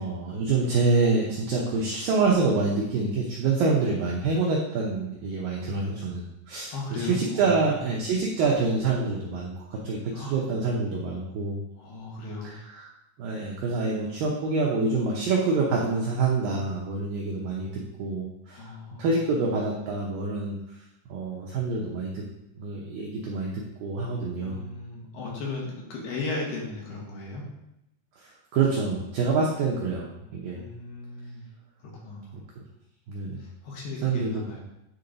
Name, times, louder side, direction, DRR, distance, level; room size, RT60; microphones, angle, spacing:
voice 1, 0.0-11.6 12.4-12.9 13.2-18.7 19.0-20.6 21.1-22.2 22.6-23.5 23.8-24.6 28.2-30.6 33.1-33.4 34.0-34.4, right 3 dB, 80° right, -3 dB, 2.0 m, -26 dB
voice 2, 6.7-7.9 10.1-10.4 11.8-12.5 18.5-19.1 24.4-27.5 30.5-31.5 31.8-32.4 33.4-34.6, left 3 dB, 70° left, -3 dB, 3.1 m, -36 dB
10.0 x 3.8 x 3.9 m, 0.86 s
omnidirectional pair, 5.1 m